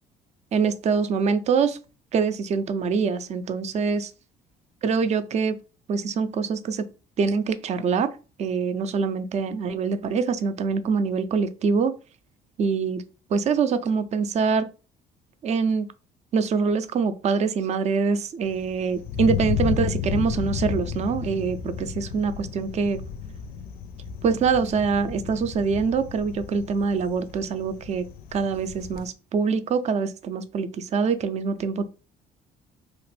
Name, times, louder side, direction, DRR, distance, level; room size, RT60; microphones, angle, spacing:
voice 1, 0.5-1.8 2.1-4.1 4.8-5.6 5.9-6.8 7.2-8.1 8.4-11.9 12.6-13.0 13.3-14.7 15.4-15.9 16.3-23.0 24.2-31.9, right 5 dB, 40° right, 11 dB, 0.4 m, -24 dB
Thunder, 18.4-29.1, left 8 dB, 65° left, 0.4 m, -33 dB
2.9 x 2.4 x 3.2 m, 0.33 s
cardioid pair, 110°, 17 cm